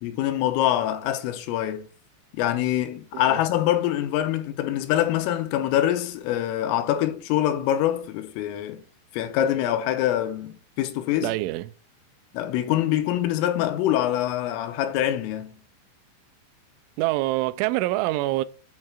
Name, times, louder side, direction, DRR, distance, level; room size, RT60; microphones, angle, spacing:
voice 1, 0.0-1.9 2.4-8.8 9.1-11.4 12.3-15.6, left 12 dB, 85° left, 3.4 m, -25 dB
voice 2, 11.2-11.7 17.0-18.4, right 18 dB, 85° right, 2.8 m, -25 dB
8.6 x 3.2 x 5.9 m
omnidirectional pair, 5.7 m